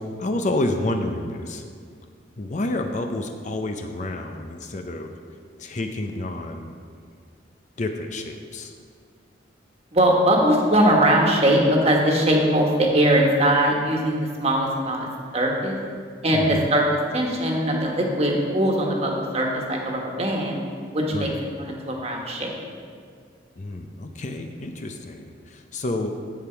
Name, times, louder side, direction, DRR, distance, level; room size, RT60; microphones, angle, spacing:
voice 1, 0.0-1.6 2.4-5.1 5.6-6.8 7.8-8.7 16.3-16.7 21.1-21.4 23.5-26.2, left 2 dB, 40° left, 5 dB, 0.6 m, -29 dB
voice 2, 9.9-15.1 15.3-15.8 16.2-16.8 17.1-20.6 20.9-21.3 21.6-22.5, right 1 dB, 35° right, 0 dB, 1.4 m, -21 dB
10.5 x 7.8 x 4.5 m, 2.1 s
head